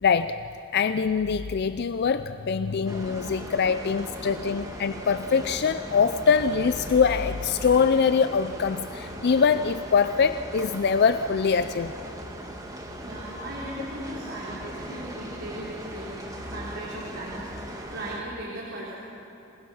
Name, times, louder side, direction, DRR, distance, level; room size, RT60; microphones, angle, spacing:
voice 1, 0.0-0.4 0.7-11.9, left 6 dB, 50° left, 11 dB, 0.4 m, -23 dB
voice 2, 2.6-3.1 3.6-4.8 13.0-18.9, right 1 dB, 60° right, -6 dB, 3.8 m, -39 dB
sound 1, 2.9-18.2, right 1 dB, 15° right, 1.9 m, -39 dB
27.0 x 20.0 x 5.7 m, 2.9 s
head